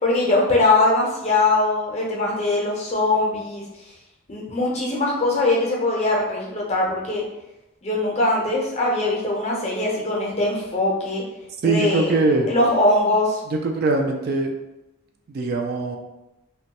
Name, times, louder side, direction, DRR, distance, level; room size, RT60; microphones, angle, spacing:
voice 1, 0.0-3.6 4.3-7.2 7.8-11.2 11.6-12.1 12.5-13.4, left 2 dB, 30° left, -3 dB, 0.6 m, -21 dB
voice 2, 11.6-12.5 13.5-14.5 15.3-16.0, right 3 dB, 45° right, 3 dB, 0.3 m, -22 dB
2.9 x 2.2 x 2.8 m, 0.94 s
head